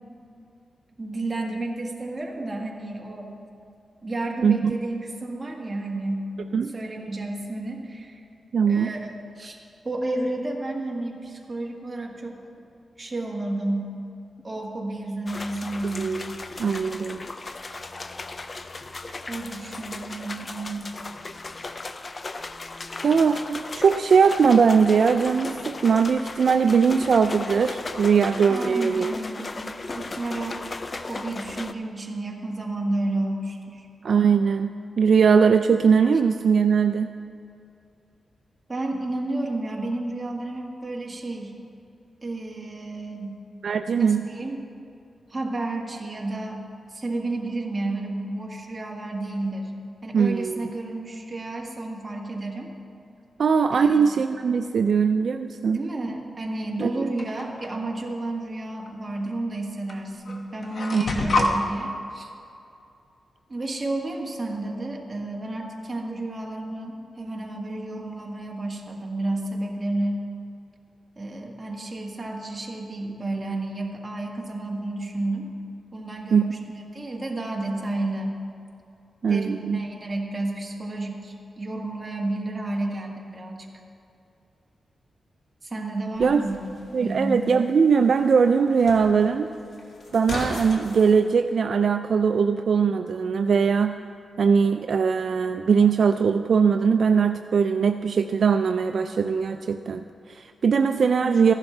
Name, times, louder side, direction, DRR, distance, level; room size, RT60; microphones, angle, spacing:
voice 1, 1.0-3.3 4.0-6.3 6.7-8.2 8.7-9.1 9.4-9.6 9.8-12.4 13.0-14.0 14.4-16.2 17.7-17.8 19.3-20.9 28.5-30.7 31.1-33.9 38.7-41.5 42.2-43.4 44.0-44.6 45.3-46.6 46.9-49.7 50.0-52.7 53.7-54.1 55.7-62.3 63.5-70.2 71.2-75.5 75.9-78.4 79.2-83.7 85.6-86.7 87.0-87.7 101.0-101.4, right 2 dB, 25° right, -1 dB, 1.5 m, -31 dB
voice 2, 4.4-4.8 6.5-6.7 8.5-8.9 16.0-17.2 23.0-29.1 34.0-37.1 43.6-44.2 50.1-50.7 53.4-55.8 56.8-57.1 60.9-61.0 76.3-76.5 79.2-79.8 86.2-86.4 86.9-89.5 90.1-94.0 94.4-101.5, right 6 dB, 60° right, 7 dB, 0.3 m, -20 dB
sound 1, 15.3-31.7, left 3 dB, 35° left, 0.5 m, -36 dB
sound 2, 57.2-57.7 58.9-59.0 59.9-60.0 60.3-61.5, left 2 dB, 50° left, 1.0 m, -26 dB
sound 3, 86.1-91.2, left 1 dB, 70° left, 1.8 m, -39 dB
15.0 x 11.5 x 3.3 m, 2.6 s
wide cardioid pair, 120°, 0 cm